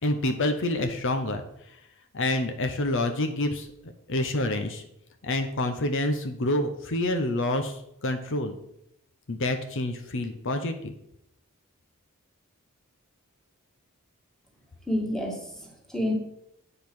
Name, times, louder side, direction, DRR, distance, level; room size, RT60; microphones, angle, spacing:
voice 1, 0.0-1.4 1.7-1.8 2.1-4.8 5.2-8.5 9.3-10.9, left 1 dB, 60° left, 7 dB, 0.9 m, -28 dB
voice 2, 14.9-16.1, left 1 dB, ahead, 0 dB, 1.8 m, -29 dB
8.8 x 5.4 x 6.1 m, 0.77 s
head